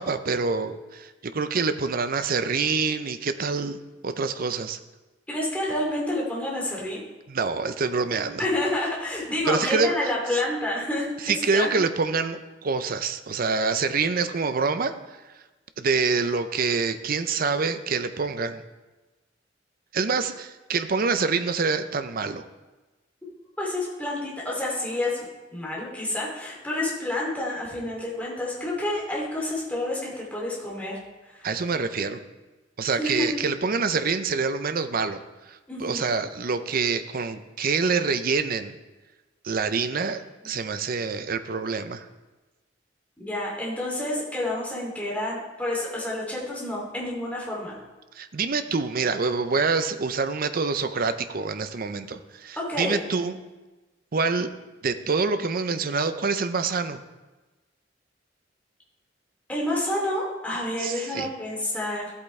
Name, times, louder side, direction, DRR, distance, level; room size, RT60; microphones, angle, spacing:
voice 1, 0.0-3.8 4.0-4.8 7.3-8.5 9.5-9.9 11.2-15.0 15.8-18.6 19.9-22.4 31.4-32.2 32.8-38.7 39.4-42.1 48.2-53.4 54.1-54.5 54.8-57.0 60.8-61.3, right 4 dB, 50° right, 10 dB, 0.6 m, -26 dB
voice 2, 5.3-7.0 8.4-11.7 23.6-25.2 25.5-31.0 31.3-31.5 33.0-33.3 35.7-36.0 43.2-47.8 52.6-53.0 59.5-62.1, left 1 dB, 10° left, -5 dB, 2.7 m, -29 dB
14.5 x 8.3 x 3.3 m, 1.2 s
head